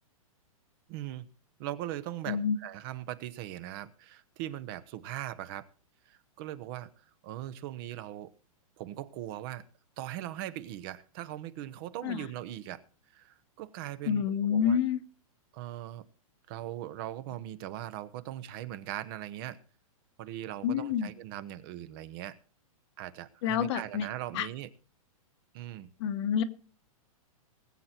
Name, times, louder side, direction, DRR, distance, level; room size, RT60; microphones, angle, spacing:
voice 1, 0.9-1.3 1.6-5.7 6.1-6.9 7.2-8.3 8.8-9.6 10.0-12.8 13.1-14.2 14.5-14.8 15.5-16.0 16.5-19.6 20.2-22.4 23.0-24.7 25.5-25.9, right 13 dB, 40° right, 15 dB, 0.9 m, -40 dB
voice 2, 2.3-2.6 12.0-12.2 14.1-15.0 20.6-21.1 23.4-24.1 24.3-24.5 26.0-26.4, left 8 dB, 50° left, 10 dB, 1.1 m, -28 dB
20.0 x 7.7 x 4.3 m, 0.38 s
hypercardioid pair, 145°, 18 cm